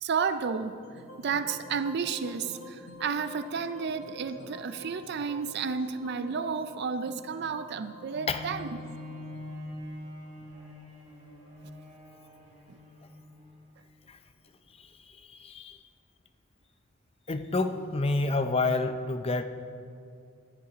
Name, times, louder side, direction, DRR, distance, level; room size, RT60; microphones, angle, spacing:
voice 1, 0.0-0.8 1.2-8.7 12.7-12.8, right 5 dB, 55° right, 11 dB, 0.4 m, -32 dB
sound 1, 0.8-11.0, left 1 dB, 80° left, 1.2 m, -49 dB
Bowed string instrument, 8.1-13.7 14.4-14.5, left 1 dB, 25° right, 2.9 m, -44 dB
voice 2, 14.8-15.8 17.3-19.4, left 3 dB, 30° left, 9 dB, 0.6 m, -29 dB
13.0 x 9.8 x 5.0 m, 2.4 s
head